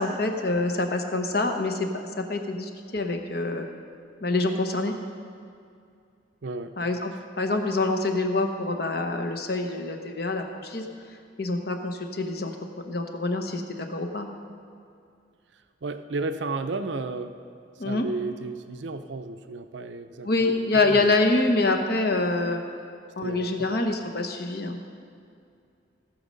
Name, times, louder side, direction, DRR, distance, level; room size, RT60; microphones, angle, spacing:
voice 1, 0.0-3.7 4.2-4.9 6.8-10.8 11.4-12.5 12.9-14.3 17.8-18.0 20.2-22.6 23.2-24.8, left 2 dB, 55° left, 4 dB, 1.0 m, -26 dB
voice 2, 6.4-6.7 15.5-17.4 17.8-21.2 23.2-23.7, right 3 dB, 70° right, 9 dB, 0.6 m, -33 dB
17.5 x 6.5 x 5.3 m, 2.4 s
head